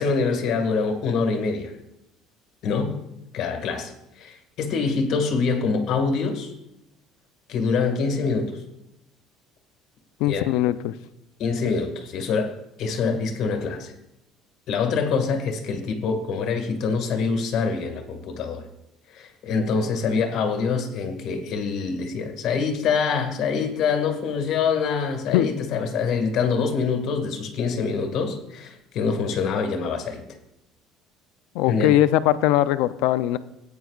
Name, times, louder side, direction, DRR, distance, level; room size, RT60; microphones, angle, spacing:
voice 1, 0.0-1.7 2.6-3.0 3.3-6.5 7.5-8.6 10.2-10.5 11.4-13.9 14.7-18.6 19.1-30.2 31.7-31.9, left 5 dB, 50° left, 5 dB, 1.8 m, -25 dB
voice 2, 10.2-10.9 25.3-25.5 31.5-33.4, left 13 dB, 80° left, 13 dB, 0.4 m, -20 dB
17.0 x 9.1 x 2.4 m, 0.88 s
cardioid pair, 155°, 0 cm